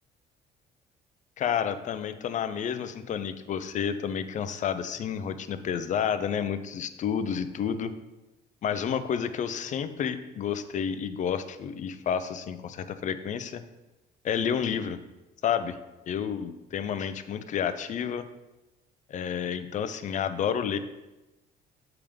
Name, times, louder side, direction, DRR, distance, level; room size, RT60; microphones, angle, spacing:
voice 1, 1.4-7.9 8.6-13.6 14.2-15.0 15.4-15.8 16.1-18.3 19.1-20.8, left 8 dB, 45° left, 11 dB, 0.5 m, -30 dB
6.9 x 3.5 x 5.1 m, 1.0 s
cardioid pair, 110°, 17 cm